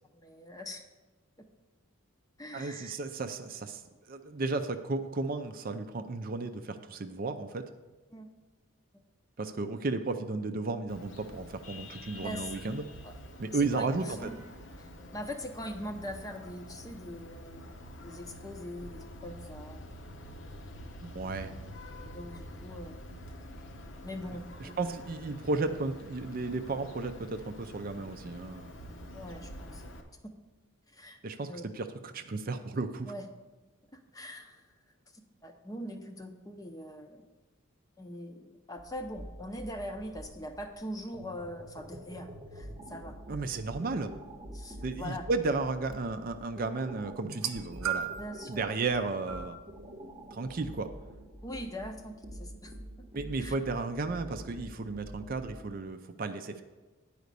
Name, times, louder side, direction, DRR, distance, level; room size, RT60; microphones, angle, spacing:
voice 1, 0.1-0.8 2.4-2.9 8.1-8.3 8.9-9.1 12.2-12.5 13.0-13.1 13.6-14.4 14.8-17.8 18.0-19.8 22.0-23.0 24.0-24.7 29.1-29.8 30.9-31.2 31.5-31.6 33.1-33.3 33.9-34.6 35.1-37.3 38.0-43.2 44.5-45.2 48.2-48.6 51.4-52.7 53.4-53.5, equal, 15° left, 6 dB, 0.6 m, -42 dB
voice 2, 2.5-3.8 4.1-7.6 9.4-12.8 13.4-14.3 21.0-21.5 24.6-28.7 31.2-33.1 43.3-44.1 44.8-48.1 48.5-49.6 50.3-50.9 53.1-56.6, right 3 dB, 40° right, 7 dB, 0.4 m, -34 dB
Vehicle horn car horn honking, 10.9-30.0, left 1 dB, 60° left, 0.9 m, -47 dB
sound 1, 38.8-55.7, right 1 dB, 25° right, 0.8 m, -47 dB
sound 2, 47.2-48.4 49.3-49.5 50.5-50.6, right 8 dB, 80° right, 0.7 m, -34 dB
9.4 x 5.0 x 6.6 m, 1.2 s
head